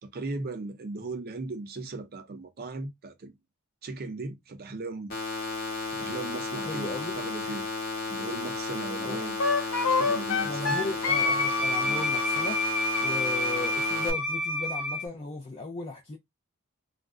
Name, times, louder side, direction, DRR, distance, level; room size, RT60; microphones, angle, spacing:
voice 1, 0.0-3.3 3.8-5.1 5.9-7.7 8.1-9.4 9.9-10.8 11.8-12.0, right 3 dB, 45° right, 0.5 m, -37 dB
sound 1, 5.1-14.1, left 3 dB, 40° left, 1.0 m, -33 dB
voice 2, 6.6-7.2 9.0-9.3 10.4-12.6 13.0-16.2, left 3 dB, 25° left, 0.4 m, -36 dB
Wind instrument woodwind instrument, 9.4-15.0, left 2 dB, 75° left, 1.1 m, -27 dB
2.4 x 2.1 x 3.5 m
head